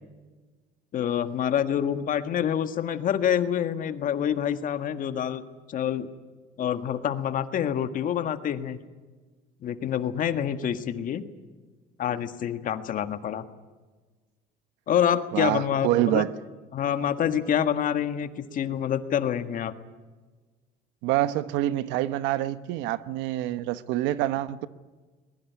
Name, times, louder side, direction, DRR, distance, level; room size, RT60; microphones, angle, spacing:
voice 1, 0.9-5.4 5.7-6.1 6.6-8.8 9.6-11.2 12.0-13.4 14.9-16.2 16.7-19.7, left 9 dB, 50° left, 9 dB, 1.7 m, -27 dB
voice 2, 15.3-16.3 21.0-24.7, right 14 dB, 85° right, 14 dB, 1.1 m, -26 dB
21.5 x 21.0 x 9.5 m, 1.3 s
cardioid pair, 125°, 18 cm